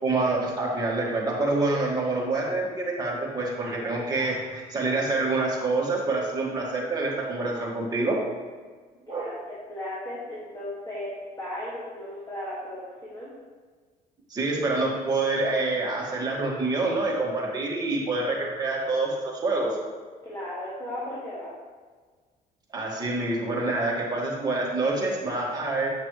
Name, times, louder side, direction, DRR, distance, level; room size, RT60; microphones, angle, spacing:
voice 1, 0.0-8.2 9.1-9.2 14.3-19.7 22.7-25.9, right 2 dB, 25° right, -4 dB, 1.9 m, -27 dB
voice 2, 9.1-11.1 11.4-13.3 20.2-21.5, left 1 dB, 20° left, -8 dB, 2.1 m, -36 dB
8.0 x 5.9 x 3.2 m, 1.5 s
cardioid pair, 110°, 17 cm